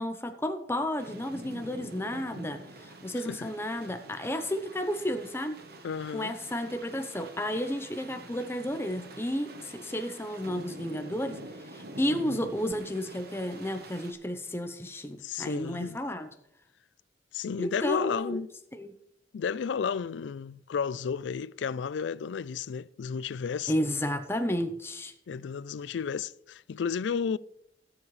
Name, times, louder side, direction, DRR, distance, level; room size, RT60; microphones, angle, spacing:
voice 1, 0.0-5.6 6.1-11.4 11.7-16.3 17.6-18.4 18.7-18.9 23.7-25.1, equal, 15° left, 0.7 m, -32 dB
sound 1, 1.0-14.1, right 1 dB, 55° right, 1.2 m, -46 dB
voice 2, 5.8-6.3 15.2-16.0 17.3-18.5 19.3-23.7 25.3-27.4, left 6 dB, 80° left, 0.4 m, -32 dB
18.5 x 7.3 x 3.2 m
head